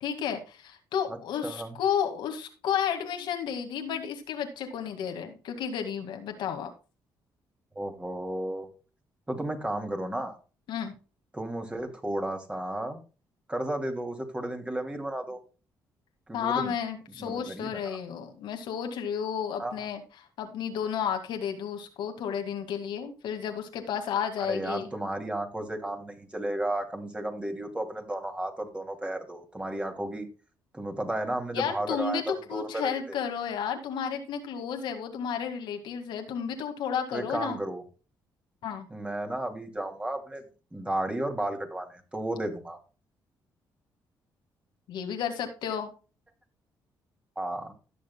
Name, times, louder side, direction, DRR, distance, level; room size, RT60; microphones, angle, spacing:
voice 1, 0.0-6.7 10.7-10.9 16.3-20.0 20.4-24.9 31.5-37.6 38.6-38.9 44.9-45.9, left 8 dB, 80° left, 5 dB, 2.0 m, -32 dB
voice 2, 1.4-1.8 7.8-8.7 9.3-10.4 11.3-13.0 13.5-15.4 16.3-16.7 17.2-18.0 19.6-19.9 24.4-30.3 30.7-33.2 37.1-37.8 38.9-40.4 40.7-42.8 47.4-47.7, right 1 dB, 15° right, 4 dB, 2.6 m, -33 dB
17.5 x 6.5 x 2.2 m, 0.34 s
cardioid pair, 90°, 8 cm